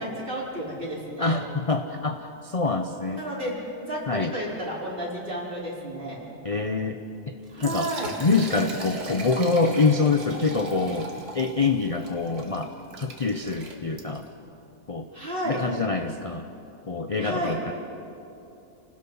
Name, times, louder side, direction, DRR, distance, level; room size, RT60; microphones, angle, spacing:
voice 1, 0.0-1.3 3.1-6.2 7.5-8.1 15.1-15.6 17.2-17.6, right 1 dB, 35° right, -5 dB, 5.0 m, -32 dB
voice 2, 1.2-3.2 4.1-4.3 6.4-7.0 7.3-7.4 7.6-7.9 8.2-14.3 14.9-15.1 15.5-16.5 16.9-17.7, left 4 dB, 35° left, 6 dB, 0.6 m, -25 dB
Liquid, 7.4-14.3, right 2 dB, 70° right, 2.5 m, -39 dB
29.0 x 18.5 x 5.6 m, 2.8 s
omnidirectional pair, 1.6 m